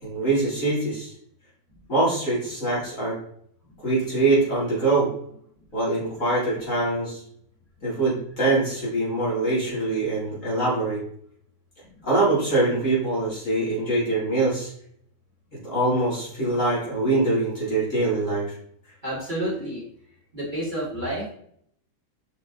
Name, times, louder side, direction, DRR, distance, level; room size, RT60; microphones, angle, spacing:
voice 1, 0.0-1.1 1.9-3.2 3.8-5.1 5.7-7.2 7.8-11.0 12.0-14.7 15.6-18.5, right 2 dB, 40° left, -7 dB, 3.8 m, -23 dB
voice 2, 19.0-19.8 20.3-21.3, right 1 dB, 25° right, -5 dB, 2.0 m, -29 dB
6.5 x 5.7 x 4.0 m, 0.67 s
omnidirectional pair, 2.2 m